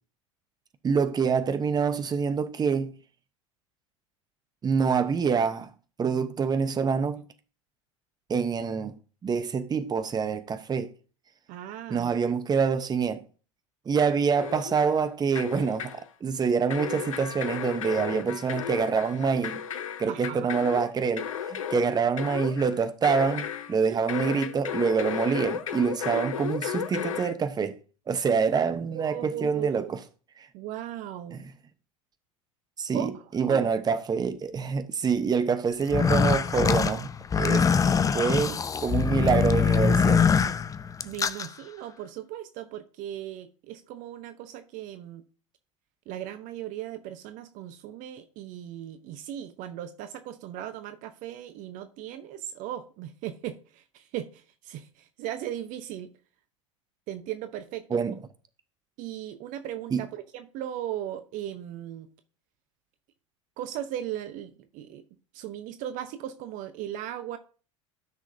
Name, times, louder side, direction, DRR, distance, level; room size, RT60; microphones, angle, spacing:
voice 1, 0.8-2.9 4.6-5.7 6.0-7.2 8.3-8.9 9.2-10.9 11.9-13.2 13.9-19.6 20.0-27.8 28.1-30.0 30.4-30.5 31.3-31.5 32.8-37.7 38.1-40.2 57.9-58.1 59.9-60.1, right 6 dB, 25° right, 1.0 m, -26 dB
voice 2, 11.5-12.3 20.1-20.6 23.9-24.0 26.1-26.3 28.9-29.9 30.5-31.4 32.9-33.2 33.5-33.6 41.0-45.2 46.1-56.1 57.1-58.0 59.0-62.1 63.6-65.0 65.3-67.4, right 11 dB, 50° right, 0.9 m, -37 dB
sound 1, 14.4-15.1 15.4-16.1 16.7-23.8 24.1-27.3, left 8 dB, 80° left, 0.7 m, -34 dB
sound 2, 35.8-41.5, left 6 dB, 20° left, 0.6 m, -23 dB
13.0 x 6.1 x 2.8 m
hypercardioid pair, 75°, 17 cm